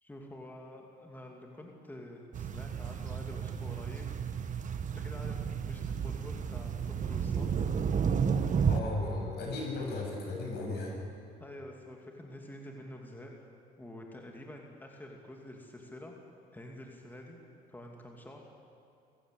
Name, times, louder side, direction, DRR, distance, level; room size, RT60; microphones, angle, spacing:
voice 1, 0.0-4.1 4.9-7.5 11.4-13.5 13.8-16.1 16.5-17.4 17.7-18.5, left 1 dB, 10° left, 1 dB, 2.7 m, -48 dB
sound 1, 2.3-8.8, right 6 dB, 45° right, 1.4 m, -32 dB
voice 2, 8.6-11.0, left 2 dB, 70° left, 0 dB, 7.6 m, -36 dB
26.5 x 16.5 x 8.4 m, 2.6 s
cardioid pair, 105°, 18 cm